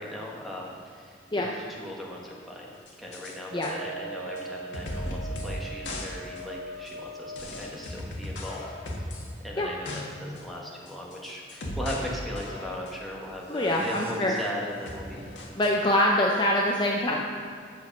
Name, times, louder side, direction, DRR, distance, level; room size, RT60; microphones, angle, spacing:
voice 1, 0.0-2.7 3.0-8.6 8.9-15.3 17.1-17.2, left 1 dB, ahead, -4 dB, 1.4 m, -38 dB
sound 1, 2.9-3.3 3.6-3.7 4.4-4.5 4.7-5.6 5.8-6.1 6.4-6.5 6.9-7.0 7.4-9.3 9.6-10.0 10.4-10.5 10.9-12.1 12.4-13.0 13.6-14.5 14.9-15.7, left 1 dB, 85° left, 1.6 m, -37 dB
Wind instrument woodwind instrument, 3.5-7.9, right 2 dB, 85° right, 0.8 m, -41 dB
voice 2, 13.5-14.3 15.5-17.2, left 1 dB, 25° left, -1 dB, 0.6 m, -24 dB
8.1 x 6.6 x 6.0 m, 2.3 s
head